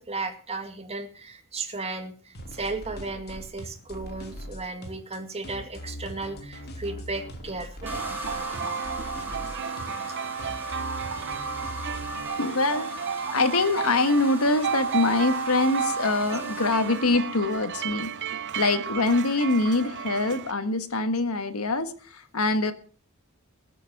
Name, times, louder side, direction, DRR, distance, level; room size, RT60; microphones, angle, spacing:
voice 1, 0.0-8.0 13.3-13.4, right 3 dB, 30° right, 6 dB, 2.3 m, -35 dB
sound 1, 2.3-12.2, equal, 50° left, 3.1 m, -41 dB
sound 2, 7.8-20.5, right 7 dB, 55° right, 0.6 m, -33 dB
sound 3, 7.9-17.8, equal, 10° right, 4.5 m, -38 dB
voice 2, 12.3-13.0 13.3-22.7, left 2 dB, 85° left, 9 dB, 1.7 m, -24 dB
20.5 x 8.5 x 6.0 m, 0.40 s
head